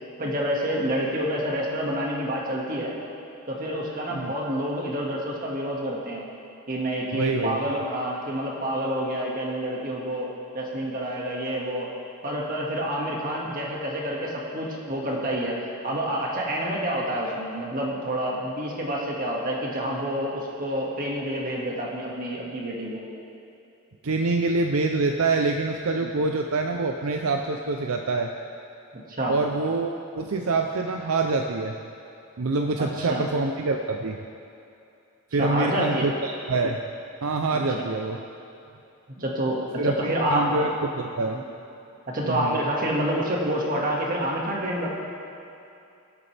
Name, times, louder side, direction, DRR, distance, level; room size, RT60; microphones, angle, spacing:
voice 1, 0.2-2.9 3.5-6.2 6.7-10.3 10.5-11.9 12.2-15.6 15.8-23.0 26.0-26.1 28.9-29.4 32.8-33.2 35.4-36.1 37.5-37.9 39.2-40.7 41.3-41.4 42.1-44.9, right 1 dB, 40° right, -3 dB, 1.9 m, -28 dB
voice 2, 7.1-7.6 24.0-28.3 29.3-29.9 30.2-31.8 32.4-34.2 35.3-36.8 37.2-38.2 39.8-41.4 42.2-42.6, right 3 dB, 70° right, 3 dB, 0.6 m, -25 dB
23.0 x 8.2 x 3.4 m, 2.7 s
head